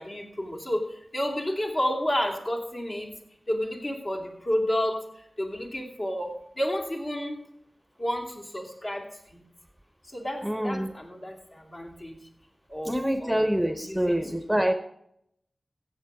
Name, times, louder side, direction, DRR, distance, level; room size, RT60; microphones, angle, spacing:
voice 1, 0.0-3.1 3.5-5.0 5.4-7.5 8.0-9.5 10.1-12.1 12.7-14.2, equal, 50° left, 1 dB, 2.9 m, -31 dB
voice 2, 10.4-10.9 12.8-14.7, equal, 5° right, 8 dB, 0.9 m, -26 dB
15.5 x 7.8 x 4.9 m, 0.73 s
wide cardioid pair, 55°, 0 cm